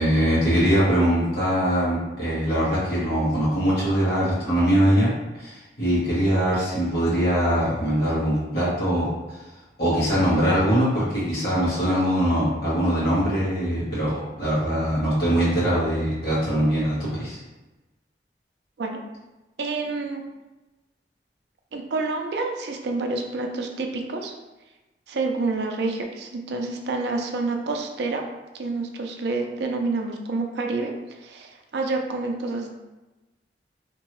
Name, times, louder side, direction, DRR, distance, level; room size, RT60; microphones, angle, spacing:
voice 1, 0.0-9.4 9.8-17.4, equal, 60° left, -9 dB, 1.4 m, -22 dB
voice 2, 19.6-20.2 21.7-24.3 25.1-28.2 28.5-30.9 31.2-32.7, right 3 dB, 75° right, 3 dB, 0.4 m, -28 dB
2.9 x 2.7 x 3.0 m, 1.1 s
head